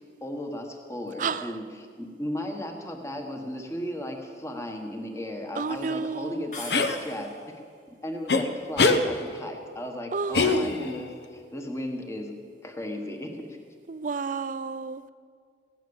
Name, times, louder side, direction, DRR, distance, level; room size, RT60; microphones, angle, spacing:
voice 1, 0.2-7.3 7.9-12.3 12.6-13.6, left 1 dB, 15° left, 3 dB, 1.3 m, -35 dB
voice 2, 1.2-1.5 5.5-6.5 10.1-10.5 13.9-15.1, right 5 dB, 45° right, 15 dB, 0.4 m, -31 dB
sound 1, 6.5-7.6, left 3 dB, 40° left, 2.2 m, -41 dB
sound 2, 6.7-7.0 8.3-8.4 8.8-9.0 10.3-11.0, left 3 dB, 65° left, 0.8 m, -22 dB
15.5 x 10.5 x 7.1 m, 2.1 s
head